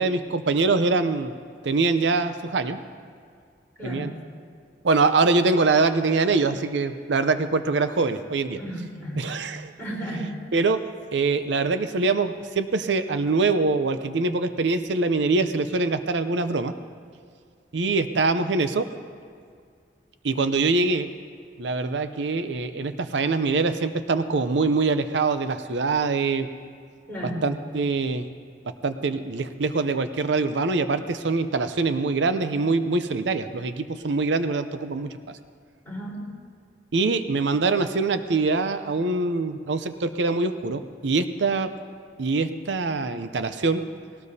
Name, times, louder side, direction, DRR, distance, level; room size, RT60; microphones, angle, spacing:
voice 1, 0.0-1.3 1.6-2.8 3.8-4.1 4.8-8.6 9.2-9.7 10.5-10.8 11.1-16.7 17.7-18.9 20.2-21.1 21.6-26.5 27.4-28.3 28.8-35.1 36.9-41.7 42.2-43.8, right 3 dB, 85° right, 10 dB, 0.6 m, -24 dB
voice 2, 3.8-4.1 8.5-9.3 9.8-10.3 27.1-27.5 35.8-36.2, right 1 dB, 10° left, -6 dB, 4.0 m, -33 dB
19.5 x 18.0 x 2.8 m, 2.1 s
head